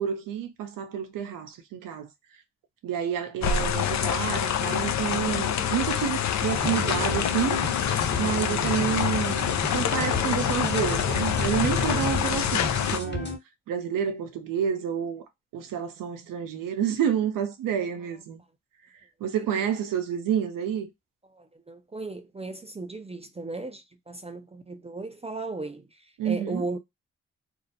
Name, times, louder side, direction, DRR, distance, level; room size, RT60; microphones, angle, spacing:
voice 1, 0.0-2.1 2.8-7.6 8.2-13.3 13.7-15.2 15.5-18.4 19.2-20.9 26.2-26.6, right 8 dB, 90° right, 0.5 m, -29 dB
sound 1, 3.4-13.0, left 9 dB, 60° left, 0.4 m, -26 dB
sound 2, 6.5-13.4, left 2 dB, 35° left, 1.0 m, -32 dB
voice 2, 21.3-25.9 26.2-26.8, right 3 dB, 20° right, 0.4 m, -36 dB
2.5 x 2.0 x 2.6 m
supercardioid pair, 40°, 32 cm